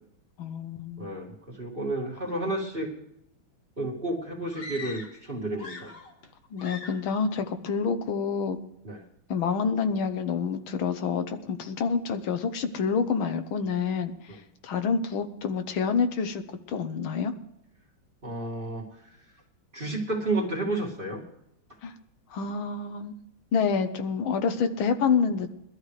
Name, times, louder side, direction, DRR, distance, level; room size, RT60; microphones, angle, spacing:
voice 1, 0.4-1.1 6.5-8.6 9.3-16.4 16.7-17.3 21.8-21.9 22.3-23.1 23.5-25.5, left 5 dB, 75° left, 8 dB, 1.8 m, -28 dB
voice 2, 1.0-2.9 3.8-5.9 8.8-9.0 18.2-18.8 19.7-21.2, right 2 dB, 25° right, -2 dB, 2.3 m, -31 dB
sound 1, 4.5-5.3 5.5-6.3 6.6-7.1, left 3 dB, 35° left, 1.2 m, -42 dB
22.0 x 12.5 x 3.3 m, 0.80 s
omnidirectional pair, 2.3 m